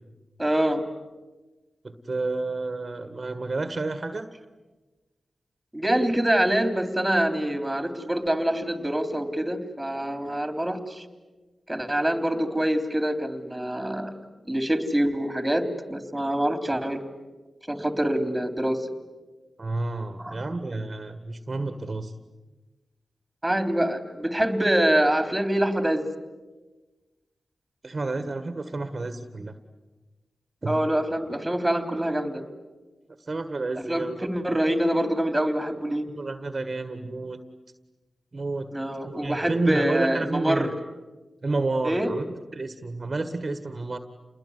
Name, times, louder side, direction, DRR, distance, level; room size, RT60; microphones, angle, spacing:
voice 1, 0.4-0.8 5.7-11.0 11.7-14.1 14.5-17.0 17.7-18.9 20.2-20.4 23.4-26.0 30.7-32.4 33.9-36.1 38.7-40.7 41.8-42.1, right 1 dB, 10° right, 8 dB, 3.6 m, -25 dB
voice 2, 1.8-4.3 19.6-22.1 27.8-29.6 30.6-30.7 33.2-34.1 36.2-37.4 38.3-38.7 39.0-40.7 41.4-42.2 42.5-44.0, right 3 dB, 45° right, 9 dB, 1.8 m, -30 dB
29.0 x 21.0 x 9.7 m, 1.2 s
cardioid pair, 55°, 0 cm